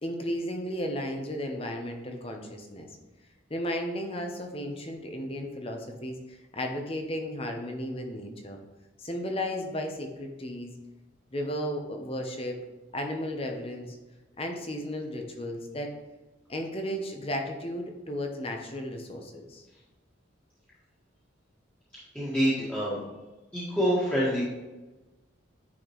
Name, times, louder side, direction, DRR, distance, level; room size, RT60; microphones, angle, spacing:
voice 1, 0.0-2.9 3.5-8.6 9.0-10.7 11.3-12.6 12.9-14.0 14.4-15.9 16.5-19.6, equal, 30° left, 3 dB, 0.8 m, -34 dB
voice 2, 22.1-23.0 23.5-24.4, equal, 5° left, -11 dB, 1.7 m, -26 dB
9.5 x 4.3 x 3.1 m, 1.1 s
head